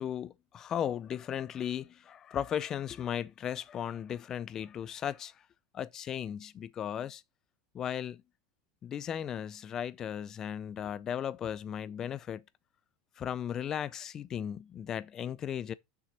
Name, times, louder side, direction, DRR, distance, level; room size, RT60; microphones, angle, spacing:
voice 1, 0.0-5.3 5.7-7.2 7.7-8.2 8.8-12.4 13.2-15.7, left 9 dB, 25° left, 0.4 m, -36 dB
6.2 x 5.7 x 4.1 m
supercardioid pair, 155°, 2 cm